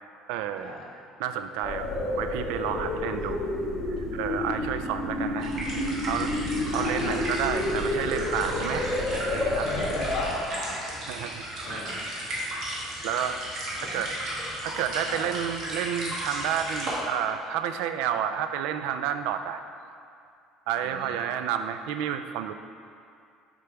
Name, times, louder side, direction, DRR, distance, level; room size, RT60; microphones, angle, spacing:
voice 1, 0.3-0.8 1.2-1.9 2.2-3.5 4.1-5.5 6.0-9.7 11.1-12.0 12.4-12.5 13.0-14.1 14.6-19.6 20.7-22.5, right 9 dB, 85° right, 9 dB, 0.3 m, -31 dB
sound 1, 1.6-10.3, left 1 dB, 20° left, 1.6 m, -30 dB
sound 2, 5.4-16.9, right 1 dB, 45° right, 1.7 m, -35 dB
voice 2, 6.7-7.2 9.6-10.7 11.6-12.0 13.8-14.0 15.1-15.3 20.8-21.2, left 2 dB, 45° left, -5 dB, 1.5 m, -37 dB
6.7 x 5.2 x 4.5 m, 2.4 s
cardioid pair, 175°, 0 cm